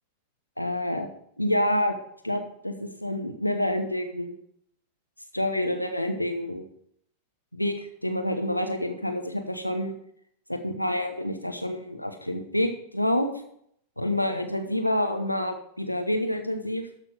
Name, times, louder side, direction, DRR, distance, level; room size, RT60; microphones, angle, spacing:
voice 1, 0.6-1.1 1.4-2.0 2.2-4.3 5.3-6.7 7.5-9.9 10.5-13.3 14.0-16.9, left 1 dB, 90° left, 6 dB, 0.9 m, -28 dB
13.0 x 6.1 x 4.8 m, 0.68 s
figure-of-eight pair, 90°, 0 cm